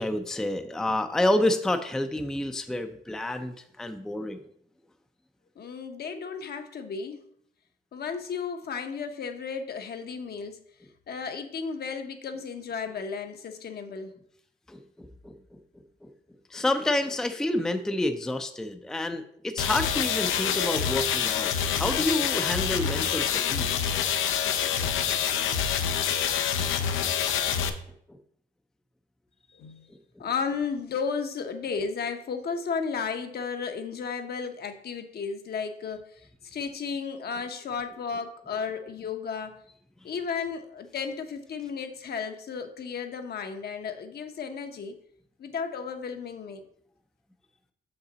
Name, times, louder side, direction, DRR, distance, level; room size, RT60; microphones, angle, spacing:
voice 1, 0.0-4.4 14.7-15.6 16.0-16.1 16.5-23.7 27.4-27.7 28.1-28.2, left 1 dB, 5° left, 7 dB, 0.4 m, -29 dB
voice 2, 5.6-7.2 7.9-10.6 11.1-14.1 29.5-29.9 30.2-39.6 40.0-45.0 45.4-46.6, left 5 dB, 55° left, 7 dB, 0.8 m, -34 dB
sound 1, 19.6-27.7, left 8 dB, 85° left, 0.6 m, -26 dB
5.9 x 5.6 x 3.9 m, 0.67 s
cardioid pair, 90°, 20 cm